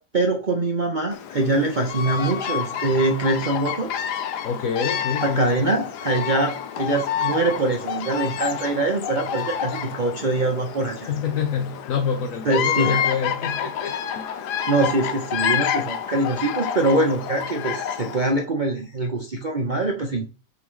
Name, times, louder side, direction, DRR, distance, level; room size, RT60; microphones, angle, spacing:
voice 1, 0.0-4.1 5.2-11.1 12.4-13.0 14.5-20.3, right 2 dB, 35° right, 0.9 m, -23 dB
Bird vocalization bird call bird song, 1.1-18.4, left 9 dB, 90° left, 1.3 m, -29 dB
voice 2, 4.4-5.7 11.1-14.5, left 6 dB, 60° left, 1.1 m, -27 dB
6.0 x 4.8 x 3.7 m
omnidirectional pair, 1.7 m